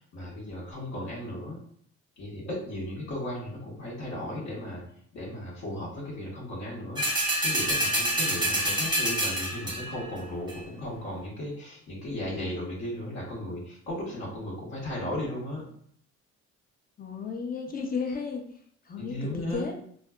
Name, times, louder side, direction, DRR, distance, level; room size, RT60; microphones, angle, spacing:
voice 1, 0.0-1.6 2.2-4.8 5.1-15.6 19.0-19.6, left 1 dB, 65° left, -6 dB, 1.0 m, -36 dB
sound 1, 7.0-10.0 10.5-10.6, right 1 dB, 15° right, 0.8 m, -27 dB
voice 2, 17.0-19.8, left 5 dB, 30° left, 3 dB, 0.5 m, -34 dB
2.5 x 2.2 x 2.3 m, 0.63 s
cardioid pair, 90°, 30 cm